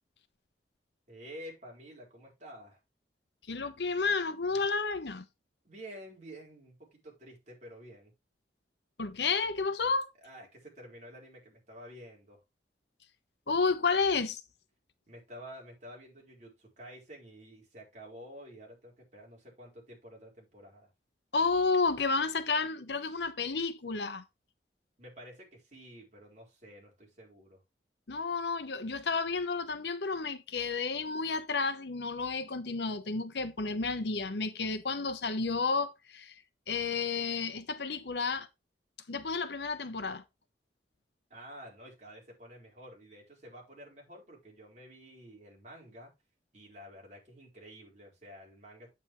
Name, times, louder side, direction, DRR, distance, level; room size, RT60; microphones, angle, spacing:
voice 1, 1.1-2.8 5.6-8.1 10.2-12.4 15.1-20.9 25.0-27.6 41.3-46.1 46.5-48.9, equal, 45° right, 4.2 m, -50 dB
voice 2, 3.5-5.2 9.0-10.1 13.5-14.4 21.3-24.2 28.1-36.3 36.7-38.5 39.1-40.2, left 4 dB, 70° left, 0.9 m, -31 dB
8.7 x 8.0 x 3.1 m
head